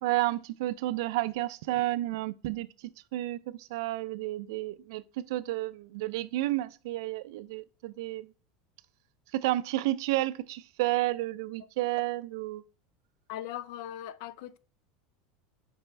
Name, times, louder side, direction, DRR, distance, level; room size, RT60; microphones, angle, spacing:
voice 1, 0.0-2.7 3.1-8.3 9.3-12.6, right 16 dB, 65° right, 0.4 m, -31 dB
voice 2, 13.3-14.6, left 12 dB, 55° left, 0.5 m, -39 dB
5.4 x 5.0 x 4.5 m
supercardioid pair, 175°, 2 cm